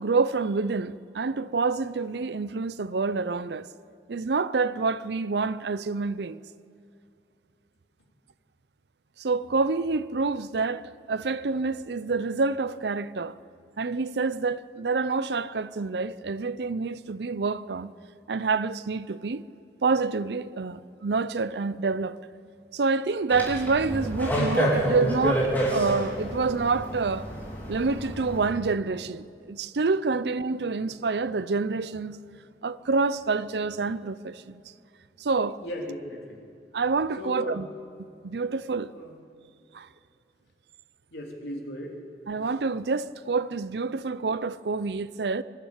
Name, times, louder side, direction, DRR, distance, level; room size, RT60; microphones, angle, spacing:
voice 1, 0.0-3.7 4.1-6.4 9.2-13.4 13.8-17.9 18.3-19.4 19.8-22.2 22.7-27.3 27.7-32.2 32.6-34.6 35.2-35.6 36.7-37.7 38.2-38.9 39.7-39.9 42.3-45.4, right 4 dB, 75° right, 0.6 m, -27 dB
sound 1, 23.3-28.5, equal, 10° left, 4.0 m, -28 dB
voice 2, 35.6-36.4 37.2-37.6 38.9-39.1 41.1-42.0, equal, 75° left, 3.3 m, -37 dB
25.0 x 12.0 x 8.8 m
head